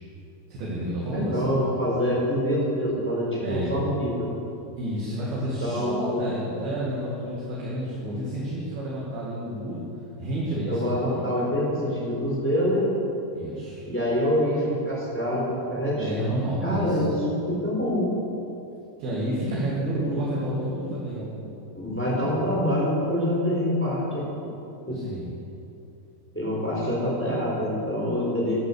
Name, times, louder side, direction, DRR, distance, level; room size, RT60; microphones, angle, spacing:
voice 1, 0.5-1.6 3.4-3.8 4.8-9.8 10.2-11.3 13.4-13.8 16.0-17.1 19.0-22.2 24.9-25.3, right 1 dB, 60° right, -6 dB, 3.6 m, -30 dB
voice 2, 1.1-4.3 5.4-6.2 10.7-12.9 13.8-16.3 16.6-17.1 17.5-18.1 21.7-24.5 24.9-25.0 26.3-28.7, equal, 5° left, -5 dB, 2.8 m, -26 dB
12.5 x 11.0 x 7.0 m, 2.8 s
omnidirectional pair, 5.3 m